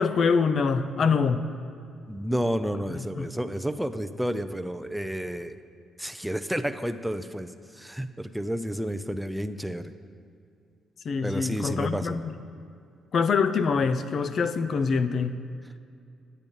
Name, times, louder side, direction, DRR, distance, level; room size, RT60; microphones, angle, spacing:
voice 1, 0.0-1.5 2.9-3.3 11.0-12.4 13.1-15.4, left 5 dB, 55° left, 12 dB, 0.5 m, -25 dB
voice 2, 2.1-5.6 6.0-9.9 11.2-12.2, equal, 5° right, 10 dB, 0.4 m, -31 dB
10.5 x 8.6 x 5.3 m, 2.4 s
cardioid pair, 90°, 0 cm